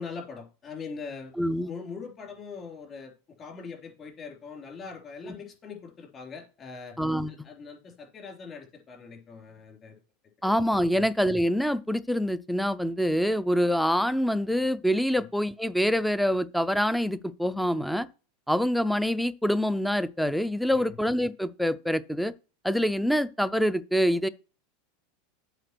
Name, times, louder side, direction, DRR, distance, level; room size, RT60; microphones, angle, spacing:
voice 1, 0.0-1.3 1.6-3.1 3.4-7.0 7.3-10.0 10.9-11.1 15.1-15.3 20.7-20.9, left 5 dB, 30° left, 3.5 m, -41 dB
voice 2, 1.4-1.7 5.3-5.4 7.0-7.3 10.4-18.1 18.5-22.3 22.6-24.3, equal, ahead, 0.5 m, -25 dB
8.0 x 4.9 x 6.1 m
supercardioid pair, 135°, 0 cm